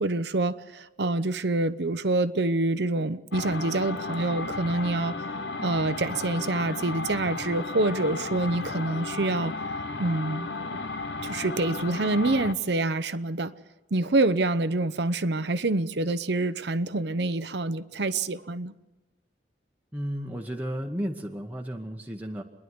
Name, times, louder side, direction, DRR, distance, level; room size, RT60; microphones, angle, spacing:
voice 1, 0.0-5.2 5.6-9.5 10.0-10.5 11.2-13.5 13.9-18.7, right 2 dB, 65° right, 0.8 m, -26 dB
sound 1, 3.3-12.5, left 3 dB, 70° left, 0.9 m, -34 dB
voice 2, 19.9-22.4, equal, 10° right, 1.2 m, -33 dB
27.5 x 11.0 x 9.6 m
head